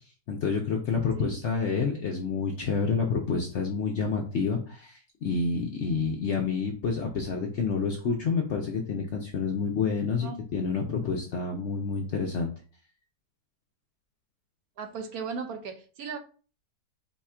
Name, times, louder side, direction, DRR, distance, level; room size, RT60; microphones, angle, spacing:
voice 1, 0.3-12.5, left 5 dB, 60° left, 0.7 m, -28 dB
voice 2, 14.8-16.2, right 5 dB, 70° right, 1.0 m, -36 dB
4.2 x 2.4 x 4.2 m
omnidirectional pair, 1.8 m